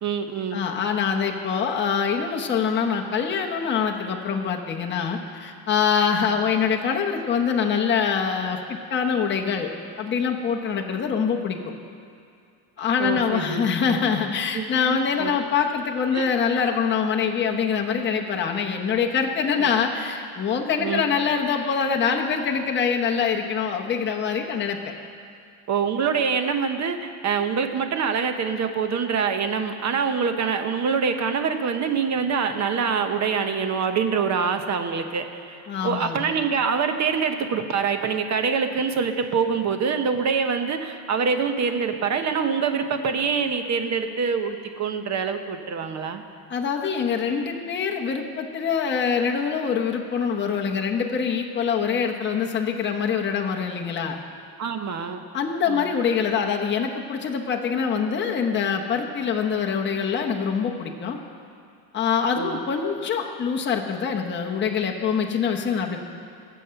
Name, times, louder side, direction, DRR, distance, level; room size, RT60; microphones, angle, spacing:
voice 1, 0.0-0.6 13.0-14.0 14.5-15.3 16.1-16.3 19.6-19.7 20.8-21.0 25.7-46.2 54.6-55.2 55.7-55.9 62.3-62.6, right 6 dB, 40° right, 7 dB, 0.9 m, -25 dB
voice 2, 0.5-8.6 8.9-9.7 10.0-11.6 12.8-24.8 35.7-36.3 46.5-54.2 55.3-61.2 61.9-66.0, left 6 dB, 25° left, 1 dB, 0.9 m, -24 dB
20.5 x 7.6 x 5.7 m, 2.4 s
cardioid pair, 165°, 43 cm